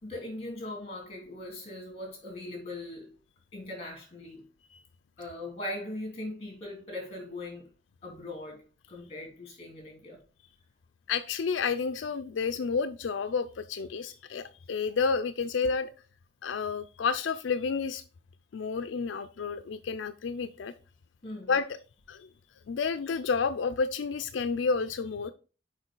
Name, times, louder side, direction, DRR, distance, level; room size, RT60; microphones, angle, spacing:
voice 1, 0.0-3.1 3.5-4.4 5.2-7.7 8.0-8.6 8.9-10.2 21.2-21.6, left 1 dB, 35° left, 3.1 m, -40 dB
voice 2, 11.1-15.9 16.4-18.0 18.5-20.7 21.5-21.6 22.1-22.3 22.7-25.3, left 5 dB, 85° left, 0.4 m, -30 dB
6.4 x 5.1 x 3.8 m
head